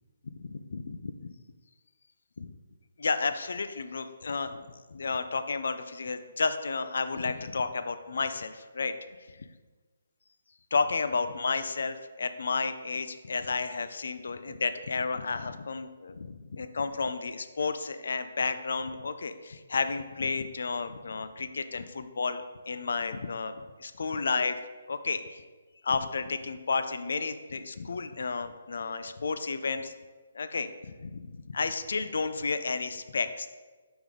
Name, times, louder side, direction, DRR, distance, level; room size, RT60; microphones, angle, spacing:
voice 1, 0.3-1.3 2.4-2.5 3.0-8.9 10.7-24.6 24.9-25.4 25.8-29.9 30.3-33.5, left 4 dB, 70° left, 10 dB, 0.4 m, -32 dB
5.2 x 5.0 x 3.7 m, 1.3 s
hypercardioid pair, 155°, 0 cm